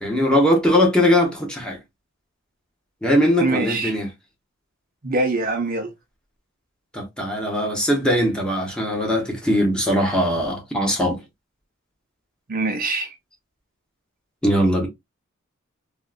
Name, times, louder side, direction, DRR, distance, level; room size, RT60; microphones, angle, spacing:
voice 1, 0.0-1.8 3.0-4.1 6.9-11.2 14.4-14.9, equal, 5° left, 1.0 m, -20 dB
voice 2, 3.4-4.0 5.0-5.9 12.5-13.1, right 2 dB, 45° right, 0.7 m, -24 dB
3.6 x 2.4 x 2.3 m
head